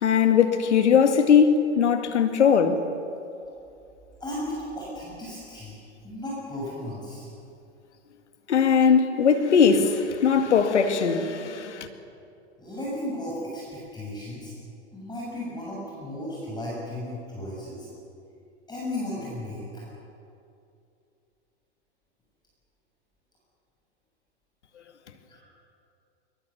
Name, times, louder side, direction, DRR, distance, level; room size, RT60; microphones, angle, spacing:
voice 1, 0.0-2.8 8.5-11.9, left 6 dB, 75° left, 2.2 m, -20 dB
voice 2, 4.2-7.3 12.6-14.5 14.9-17.9 18.7-19.8 25.3-25.4, left 1 dB, 10° left, 7.3 m, -35 dB
22.5 x 22.5 x 7.2 m
hypercardioid pair, 100°, 35 cm